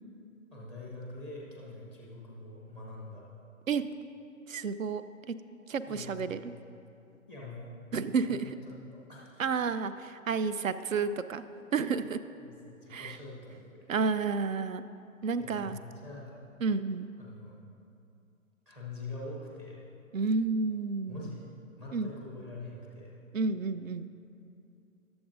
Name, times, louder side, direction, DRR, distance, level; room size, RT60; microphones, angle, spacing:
voice 1, 0.5-3.2 5.9-6.4 7.3-7.7 8.3-8.8 9.1-9.4 12.4-13.9 15.4-16.4 17.2-17.5 18.7-19.8 21.1-21.5 21.8-23.2, left 2 dB, 5° right, -4 dB, 0.5 m, -44 dB
voice 2, 4.5-5.4 5.7-6.5 7.9-8.6 9.4-11.4 11.7-12.2 12.9-13.2 13.9-14.8 15.2-15.8 16.6-17.1 20.1-21.3 21.9-22.1 23.3-24.1, right 4 dB, 70° right, 13 dB, 0.6 m, -31 dB
18.0 x 7.1 x 2.5 m, 2.6 s
figure-of-eight pair, 130°, 41 cm